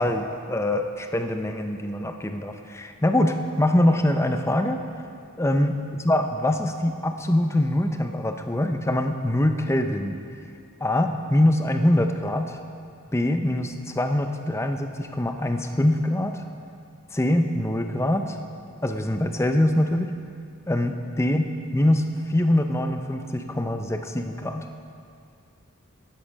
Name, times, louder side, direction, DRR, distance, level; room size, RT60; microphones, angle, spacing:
voice 1, 0.0-4.8 5.4-10.2 10.8-12.6 13.1-16.4 17.1-18.4 18.8-20.1 20.7-21.5 21.7-24.7, left 1 dB, 15° left, 6 dB, 0.6 m, -23 dB
12.5 x 10.5 x 5.2 m, 2.4 s
head